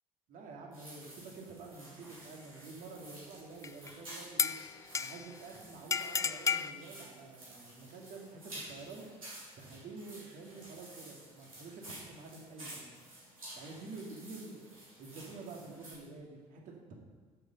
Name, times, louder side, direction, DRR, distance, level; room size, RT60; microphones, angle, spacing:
voice 1, 0.3-4.6 5.0-9.1 9.6-12.9 13.6-14.7 15.0-16.9, right 3 dB, 50° right, 0 dB, 2.3 m, -48 dB
sound 1, 0.7-15.9, right 1 dB, 85° right, 3.1 m, -52 dB
sound 2, 3.6-3.9 4.4-5.4 5.9-6.7, left 6 dB, 20° left, 0.4 m, -33 dB
11.0 x 7.6 x 5.6 m, 1.4 s
figure-of-eight pair, 50°, 17 cm